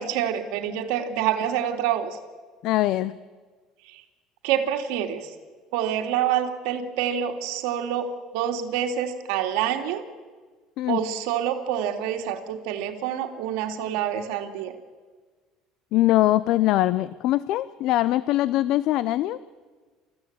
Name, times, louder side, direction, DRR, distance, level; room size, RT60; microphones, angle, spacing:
voice 1, 0.0-2.1 3.9-4.0 4.4-5.3 5.7-10.0 10.9-14.7, right 9 dB, 80° right, 6 dB, 2.6 m, -27 dB
voice 2, 2.6-3.1 10.8-11.0 15.9-19.4, left 15 dB, 65° left, 17 dB, 0.6 m, -22 dB
28.0 x 15.5 x 8.9 m, 1.4 s
cardioid pair, 130°, 0 cm